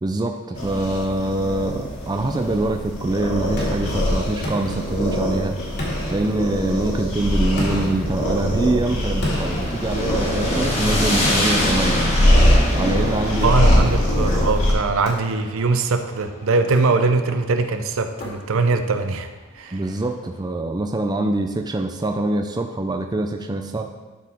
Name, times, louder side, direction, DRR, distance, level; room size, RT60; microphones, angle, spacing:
voice 1, 0.0-5.5 6.1-12.0 12.7-13.9 19.7-23.8, right 2 dB, 20° right, 4 dB, 0.4 m, -24 dB
sound 1, 0.5-14.7, equal, 70° left, 2.5 m, -22 dB
sound 2, 3.6-5.4 5.8-6.9 7.6-10.6 11.2-12.6 13.4-14.0 15.1-15.8 16.6-17.4 18.2-18.9, left 1 dB, 50° left, 2.2 m, -33 dB
sound 3, 9.3-17.6, left 1 dB, 30° left, 1.6 m, -27 dB
voice 2, 13.4-19.8, right 3 dB, 65° right, 7 dB, 0.6 m, -21 dB
12.0 x 4.7 x 3.6 m, 1.2 s
head